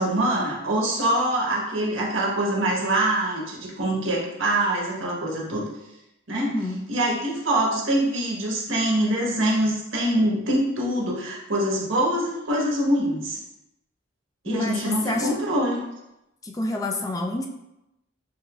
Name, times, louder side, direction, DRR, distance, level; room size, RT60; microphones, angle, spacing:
voice 1, 0.0-5.7 6.3-6.5 6.9-13.4 14.4-15.8, right 1 dB, 80° right, -3 dB, 1.2 m, -24 dB
voice 2, 6.4-6.8 14.5-15.4 16.4-17.5, left 1 dB, 20° left, 2 dB, 0.3 m, -28 dB
5.5 x 3.0 x 2.3 m, 0.89 s
head